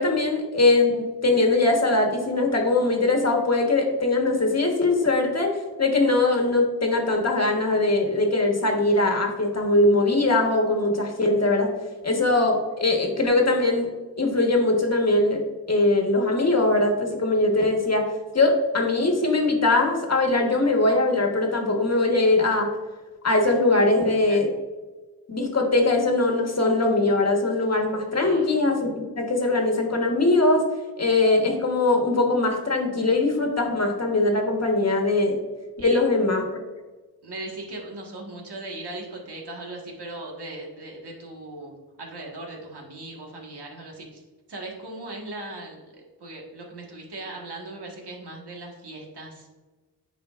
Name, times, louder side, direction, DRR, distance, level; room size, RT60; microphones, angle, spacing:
voice 1, 0.0-11.7 12.0-13.9 14.2-15.4 15.7-18.1 18.3-22.7 23.2-24.5 25.3-30.7 31.0-35.4 35.8-36.4, left 2 dB, 40° left, 2 dB, 1.3 m, -21 dB
voice 2, 28.1-28.5 35.8-36.0 37.2-44.2 44.5-45.8 46.2-49.5, right 2 dB, 80° right, 0 dB, 1.6 m, -38 dB
8.8 x 5.0 x 2.4 m, 1.3 s
wide cardioid pair, 70°, 39 cm